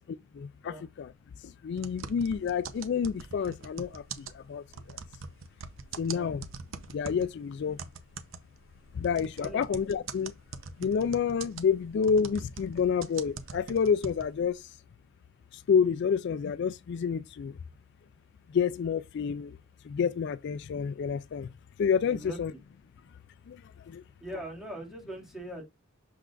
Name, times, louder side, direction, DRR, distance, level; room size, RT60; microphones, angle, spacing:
voice 1, 0.4-1.1 1.6-4.0 4.3-4.6 6.0-6.4 6.9-7.8 9.0-10.3 10.8-14.6 15.7-17.5 18.5-19.5 19.9-21.5 21.8-22.5 23.5-23.6 23.9-24.0, left 6 dB, 55° left, 0.3 m, -28 dB
sound 1, 1.8-7.3 7.8-14.5, right 5 dB, 75° right, 0.8 m, -42 dB
voice 2, 22.1-22.4 24.2-25.6, right 1 dB, ahead, 2.2 m, -41 dB
6.8 x 5.9 x 2.5 m
head